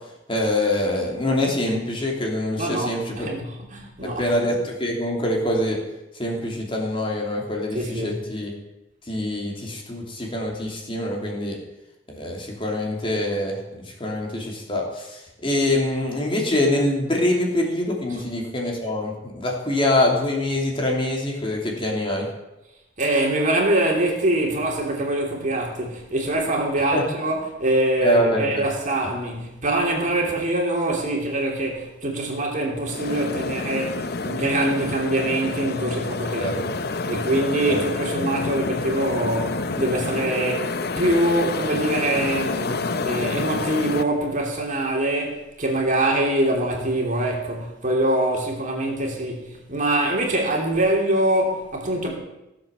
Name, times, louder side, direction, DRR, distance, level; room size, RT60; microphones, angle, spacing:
voice 1, 0.3-3.3 4.2-5.8 6.2-8.5 9.1-11.6 12.1-13.6 14.0-22.2 26.9-27.0 28.0-28.5 36.4-36.6 37.7-37.8, left 1 dB, 30° left, 2.9 m, -24 dB
voice 2, 2.6-4.3 7.7-8.2 18.1-18.2 23.0-36.8 37.1-52.1, right 1 dB, 40° right, 3.0 m, -24 dB
sound 1, 32.9-44.0, left 3 dB, 55° left, 0.8 m, -28 dB
16.0 x 7.7 x 7.0 m
head